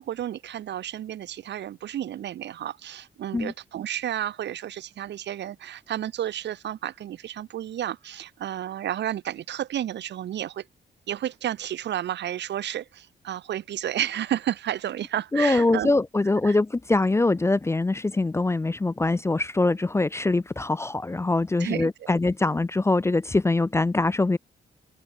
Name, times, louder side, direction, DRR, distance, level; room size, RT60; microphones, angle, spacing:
voice 1, 0.0-10.7 11.1-15.9 16.4-16.6 21.6-21.9, right 11 dB, 90° right, 2.1 m, -31 dB
voice 2, 15.3-24.4, left 2 dB, 15° left, 0.4 m, -23 dB
open air
cardioid pair, 100°, 18 cm